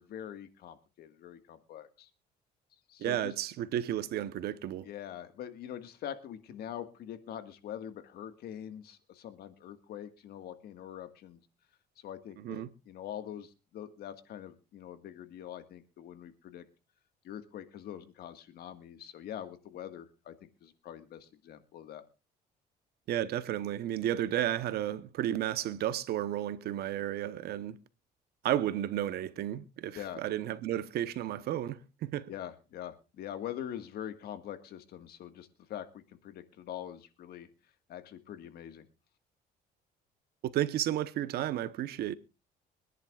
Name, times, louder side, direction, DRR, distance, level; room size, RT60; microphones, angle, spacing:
voice 1, 0.0-2.1 2.9-3.3 4.8-11.4 12.0-16.6 17.2-22.0 29.9-30.2 32.3-37.5 37.9-38.9, left 10 dB, 70° left, 1.7 m, -44 dB
voice 2, 3.0-4.9 12.4-12.7 23.1-27.8 28.4-32.3 40.4-42.1, right 12 dB, 70° right, 1.0 m, -32 dB
24.5 x 10.5 x 2.4 m
cardioid pair, 110°, 17 cm